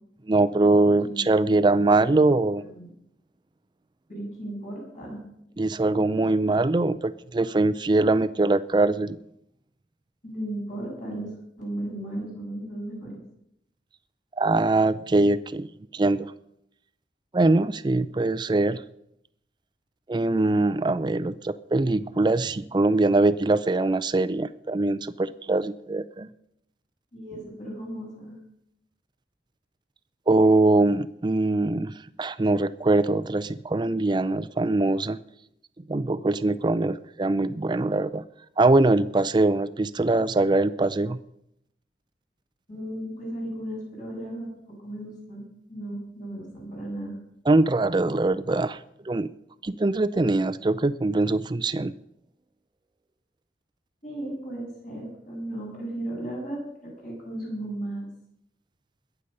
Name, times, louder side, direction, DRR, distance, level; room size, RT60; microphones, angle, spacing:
voice 1, 0.3-2.6 5.6-9.2 14.4-15.7 15.9-16.3 17.3-18.8 20.1-26.3 30.3-31.9 32.2-35.2 35.9-38.2 38.6-41.2 47.5-48.8 49.1-49.3 49.6-51.9, right 2 dB, 25° right, 14 dB, 0.4 m, -22 dB
voice 2, 0.9-1.5 2.0-2.9 4.1-5.2 10.2-11.3 11.6-13.2 27.1-28.4 42.7-44.5 44.8-47.1 54.0-58.1, right 1 dB, 45° left, -3 dB, 7.4 m, -35 dB
21.5 x 8.0 x 5.5 m, 0.77 s
head